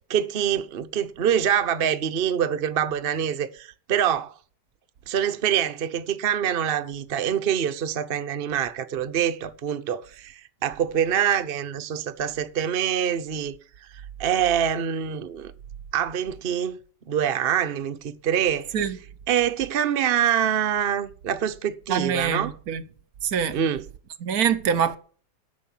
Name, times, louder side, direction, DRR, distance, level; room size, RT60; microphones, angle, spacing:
voice 1, 0.1-4.3 5.1-13.5 13.9-15.5 15.9-16.8 17.1-18.7 19.3-22.5 23.5-23.8, right 9 dB, 50° right, 0.8 m, -25 dB
voice 2, 21.9-22.8 23.2-23.6 24.2-25.0, right 7 dB, 65° right, 1.3 m, -24 dB
11.0 x 6.2 x 7.4 m
omnidirectional pair, 1.8 m